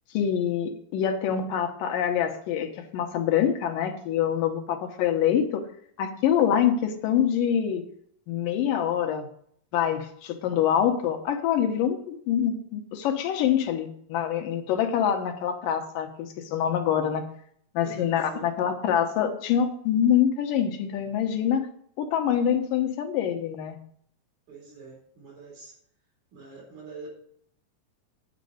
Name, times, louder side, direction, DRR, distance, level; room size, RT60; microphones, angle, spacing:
voice 1, 0.1-5.6 6.0-7.8 8.3-9.3 9.7-17.2 17.8-21.7 22.0-23.8, left 9 dB, 85° left, 6 dB, 2.6 m, -25 dB
voice 2, 17.8-18.5 24.5-25.8 26.3-27.1, right 4 dB, 60° right, -3 dB, 5.3 m, -44 dB
9.6 x 5.2 x 7.7 m, 0.65 s
omnidirectional pair, 3.8 m